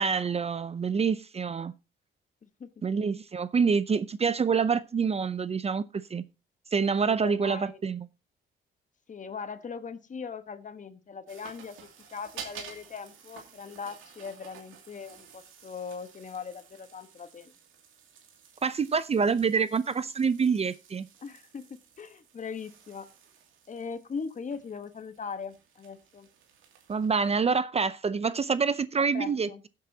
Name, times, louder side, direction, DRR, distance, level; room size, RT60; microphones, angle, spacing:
voice 1, 0.0-1.7 2.8-5.8 6.1-6.2 6.7-8.1 18.6-21.1 26.9-29.7, right 5 dB, 30° right, 0.6 m, -26 dB
voice 2, 7.1-7.8 9.1-17.5 21.2-23.1 23.7-26.3 29.1-29.6, left 5 dB, 40° left, 1.2 m, -40 dB
sound 1, 11.3-27.3, right 7 dB, 85° right, 2.6 m, -51 dB
15.5 x 8.5 x 2.8 m
cardioid pair, 90°, 20 cm